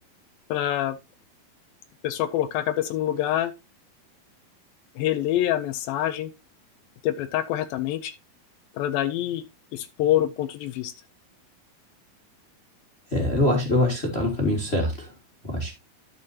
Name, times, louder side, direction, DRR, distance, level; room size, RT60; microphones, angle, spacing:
voice 1, 0.5-1.0 2.0-3.5 5.0-6.3 7.0-8.1 8.8-9.4 9.7-10.9, left 12 dB, 80° left, 2.4 m, -26 dB
voice 2, 13.1-15.1 15.4-15.7, left 1 dB, 30° left, 1.2 m, -24 dB
11.5 x 6.6 x 2.8 m
omnidirectional pair, 4.3 m